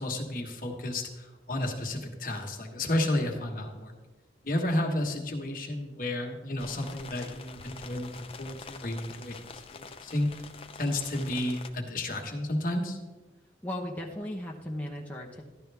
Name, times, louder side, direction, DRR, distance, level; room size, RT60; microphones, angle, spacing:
voice 1, 0.0-3.9 4.4-10.4 10.7-13.0, left 1 dB, 50° left, 2 dB, 1.5 m, -32 dB
sound 1, 6.6-11.7, left 4 dB, 30° left, 0.7 m, -46 dB
voice 2, 13.6-15.4, left 1 dB, 10° left, -2 dB, 1.0 m, -36 dB
13.5 x 11.0 x 3.5 m, 1.2 s
head